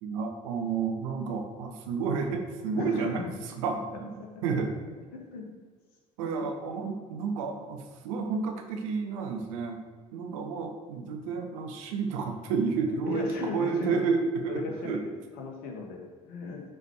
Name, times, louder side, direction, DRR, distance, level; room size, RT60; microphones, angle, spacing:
voice 1, 0.0-3.3 3.6-4.7 6.2-9.8 10.1-15.0, right 5 dB, 70° right, 4 dB, 1.1 m, -31 dB
voice 2, 2.7-3.3 4.2-4.4 5.1-5.5 13.0-14.1 14.5-15.0 15.4-16.6, left 4 dB, 60° left, 1 dB, 2.1 m, -36 dB
11.0 x 4.8 x 4.8 m, 1.5 s
figure-of-eight pair, 60°, 18 cm